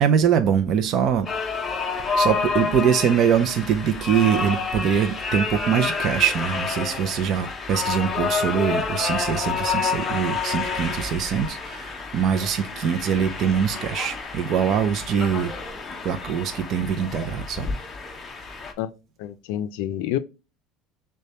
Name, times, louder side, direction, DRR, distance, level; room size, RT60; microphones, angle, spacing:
voice 1, 0.0-1.3 2.2-15.5 16.0-17.7, right 8 dB, 40° right, 0.5 m, -23 dB
sound 1, 1.3-18.7, left 5 dB, 15° left, 0.6 m, -29 dB
voice 2, 19.2-20.2, left 11 dB, 70° left, 0.4 m, -28 dB
6.4 x 2.2 x 2.8 m
cardioid pair, 165°, 0 cm